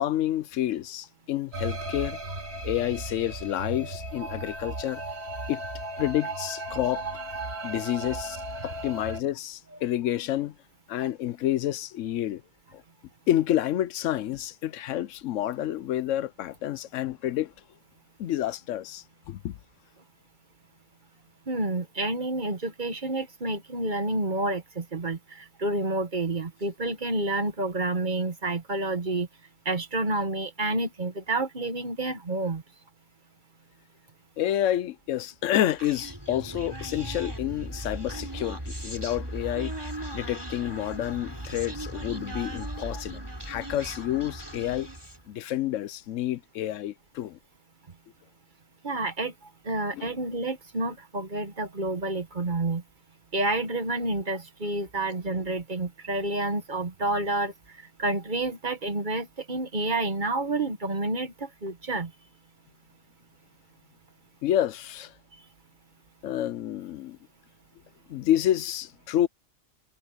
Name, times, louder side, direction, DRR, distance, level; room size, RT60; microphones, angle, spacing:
voice 1, 0.0-2.2 2.6-5.0 5.5-5.6 6.0-7.0 7.6-10.6 10.9-12.4 12.7-12.8 13.3-17.5 18.2-19.6 34.4-39.7 40.1-44.9 45.3-47.4 49.9-50.1 64.4-65.1 66.2-67.2 68.1-69.3, left 12 dB, 85° left, 1.0 m, -29 dB
sound 1, 1.5-9.2, right 1 dB, 55° right, 2.5 m, -35 dB
voice 2, 21.5-29.3 29.6-32.6 42.3-42.4 42.9-43.0 48.8-52.8 53.3-62.1 65.3-65.4, right 2 dB, 40° right, 1.5 m, -29 dB
Human voice, 35.8-45.3, right 1 dB, 20° right, 3.9 m, -37 dB
omnidirectional pair, 1.3 m